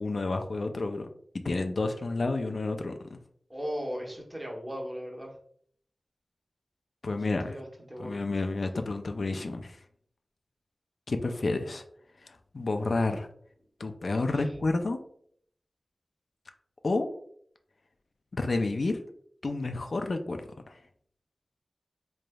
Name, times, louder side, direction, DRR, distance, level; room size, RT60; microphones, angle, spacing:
voice 1, 0.0-1.1 1.4-3.2 7.0-7.6 8.0-9.8 11.1-11.8 12.2-13.3 13.8-15.0 16.8-17.1 18.3-19.0 19.4-20.8, left 3 dB, 70° left, 6 dB, 0.3 m, -30 dB
voice 2, 3.5-5.3 7.5-8.2 14.3-14.5, equal, 25° right, -1 dB, 1.0 m, -37 dB
3.9 x 3.2 x 2.2 m, 0.63 s
wide cardioid pair, 85°, 0 cm